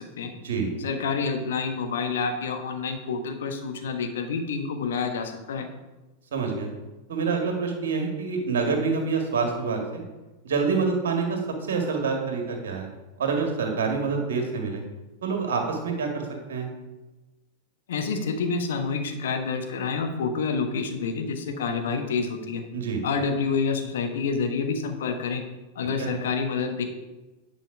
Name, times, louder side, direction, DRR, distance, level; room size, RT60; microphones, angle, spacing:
voice 1, 0.0-0.3 0.8-5.7 17.9-22.6 23.0-25.4 25.7-26.8, left 5 dB, 60° left, 5 dB, 1.2 m, -28 dB
voice 2, 6.3-6.7 7.1-10.0 10.4-11.4 11.7-12.9 13.2-14.8 15.2-16.7 22.7-23.0 26.0-26.1, right 5 dB, 60° right, 3 dB, 2.0 m, -26 dB
10.0 x 5.6 x 5.0 m, 1.1 s
figure-of-eight pair, 90°, 0 cm